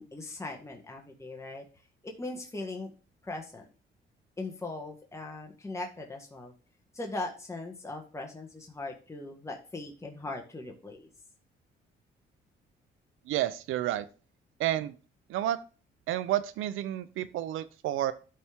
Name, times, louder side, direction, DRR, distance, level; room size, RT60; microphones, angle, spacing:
voice 1, 0.0-1.6 2.0-2.9 3.2-3.6 4.4-6.5 6.9-11.1, left 2 dB, 15° left, 1 dB, 1.7 m, -39 dB
voice 2, 13.3-14.1 14.6-14.9 15.3-15.6 16.1-18.1, right 13 dB, 90° right, 15 dB, 0.6 m, -30 dB
12.0 x 4.3 x 3.6 m, 0.36 s
cardioid pair, 90°, 20 cm